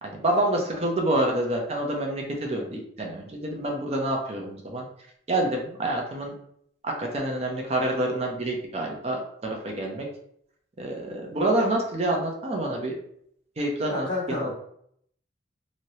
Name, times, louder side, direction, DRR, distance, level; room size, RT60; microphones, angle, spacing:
voice 1, 0.0-4.9 5.3-6.3 6.8-9.2 9.6-10.1 10.8-12.9 13.6-14.5, right 1 dB, 35° right, 1 dB, 0.6 m, -27 dB
voice 2, 13.9-14.5, left 2 dB, 65° left, -4 dB, 1.3 m, -30 dB
3.1 x 2.8 x 2.7 m, 0.69 s
head